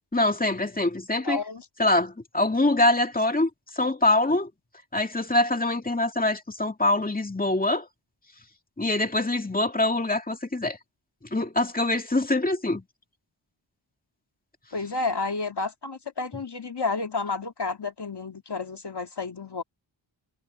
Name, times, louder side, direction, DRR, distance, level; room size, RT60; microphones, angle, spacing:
voice 1, 0.1-1.4 1.8-4.5 4.9-7.9 8.8-10.8 11.3-12.8, left 2 dB, 15° left, 2.3 m, -24 dB
voice 2, 1.2-1.6 14.7-19.6, left 3 dB, 55° left, 2.5 m, -31 dB
wide cardioid pair, 80°, 48 cm